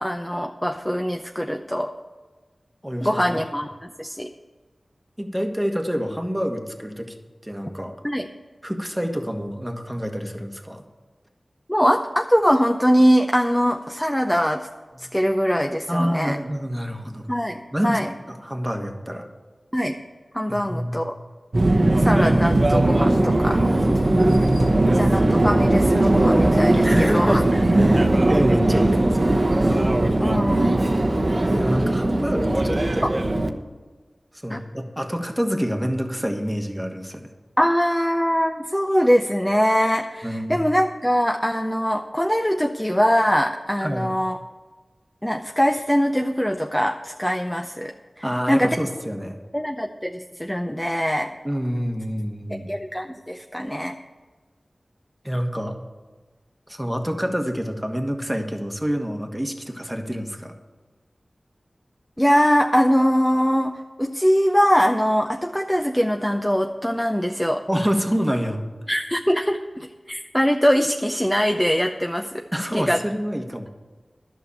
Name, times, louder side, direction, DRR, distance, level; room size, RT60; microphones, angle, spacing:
voice 1, 0.0-1.9 3.0-4.3 8.0-8.3 11.7-14.7 15.0-16.4 17.3-18.1 19.7-20.0 20.3-21.2 22.0-23.6 24.9-27.4 30.2-30.9 34.5-34.6 37.6-44.4 45.2-47.9 48.5-48.8 49.5-51.3 52.7-54.0 62.2-67.6 68.9-72.4 72.7-73.0, equal, 10° left, 5 dB, 0.6 m, -22 dB
voice 2, 2.8-3.4 5.2-7.1 7.4-7.9 8.6-10.8 14.9-15.1 15.9-17.3 17.7-18.0 18.3-19.3 20.5-21.0 23.9-25.0 26.8-29.3 31.5-33.2 34.4-37.3 40.2-40.6 43.8-44.1 48.2-49.4 51.4-52.7 55.2-55.8 56.7-60.5 67.7-68.6 72.5-73.7, equal, 10° right, 5 dB, 1.4 m, -27 dB
Subway metro underground, 21.5-33.5, right 1 dB, 50° right, 0.9 m, -19 dB
11.0 x 6.1 x 8.5 m, 1.4 s
cardioid pair, 40°, 0 cm